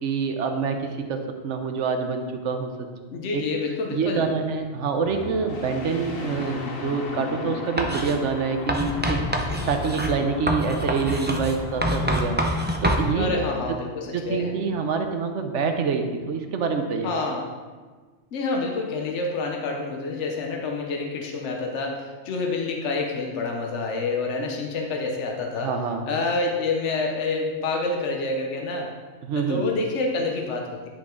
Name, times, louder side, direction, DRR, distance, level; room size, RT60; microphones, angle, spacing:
voice 1, 0.0-2.7 3.3-3.4 3.9-12.4 12.8-13.3 13.7-13.8 14.1-17.1 25.6-26.1 29.2-29.7, right 5 dB, 80° right, 6 dB, 1.2 m, -26 dB
voice 2, 3.1-4.3 13.1-14.5 17.0-17.4 18.3-25.7 26.1-28.9 29.3-30.9, left 3 dB, 75° left, 1 dB, 1.2 m, -28 dB
sound 1, 5.1-13.1, left 3 dB, 55° left, 1.1 m, -36 dB
Writing, 7.8-8.2 8.7-13.1, equal, 10° right, 0.5 m, -26 dB
9.9 x 6.1 x 3.8 m, 1.4 s
omnidirectional pair, 1.2 m